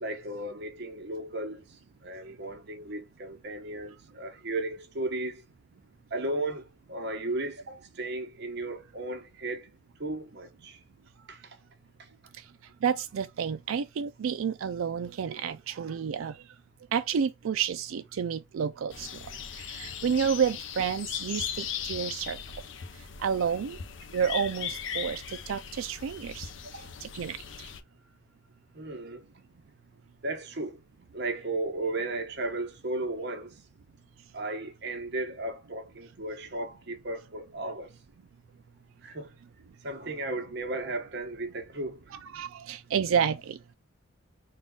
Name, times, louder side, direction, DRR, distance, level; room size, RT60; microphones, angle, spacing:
voice 1, 0.0-1.6 2.0-5.4 6.1-9.7 10.0-10.8 11.3-11.5 12.0-12.1 26.7-26.9 28.7-29.3 30.2-30.8 31.1-33.5 34.3-37.9 39.0-39.3 39.8-42.0, right 2 dB, 55° right, 1.1 m, -35 dB
voice 2, 12.8-16.4 16.9-19.1 19.6-22.4 23.2-23.8 24.1-26.5 27.0-27.7 42.3-43.7, right 7 dB, 85° right, 0.4 m, -30 dB
sound 1, 18.9-27.8, left 8 dB, 65° left, 0.6 m, -38 dB
3.8 x 2.4 x 3.7 m
head